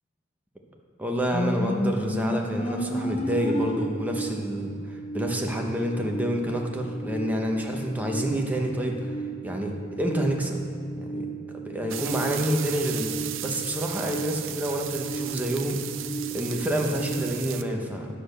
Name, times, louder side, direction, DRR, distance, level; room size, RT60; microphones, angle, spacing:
voice 1, 1.0-9.1 9.4-10.6 11.0-15.9 16.3-18.1, equal, 10° right, 1 dB, 0.8 m, -28 dB
sound 1, 1.3-17.2, right 2 dB, 30° left, 0.6 m, -34 dB
sound 2, 11.9-17.6, right 12 dB, 85° right, 0.5 m, -36 dB
9.8 x 4.3 x 6.7 m, 2.7 s
head